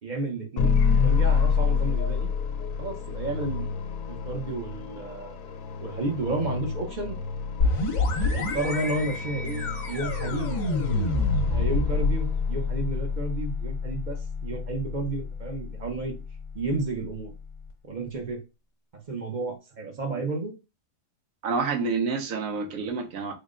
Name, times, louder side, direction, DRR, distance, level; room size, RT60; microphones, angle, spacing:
voice 1, 0.0-2.3 2.8-3.7 4.1-5.4 5.8-7.2 8.3-10.6 11.5-16.2 16.5-17.3 17.8-18.4 18.9-20.5, right 2 dB, 45° right, 0.7 m, -32 dB
sound 1, 0.6-12.7, left 6 dB, 90° left, 1.0 m, -28 dB
sound 2, 7.6-17.2, left 3 dB, 65° left, 1.2 m, -28 dB
voice 2, 21.4-23.3, right 4 dB, 85° right, 1.2 m, -28 dB
3.7 x 2.1 x 3.6 m
omnidirectional pair, 1.4 m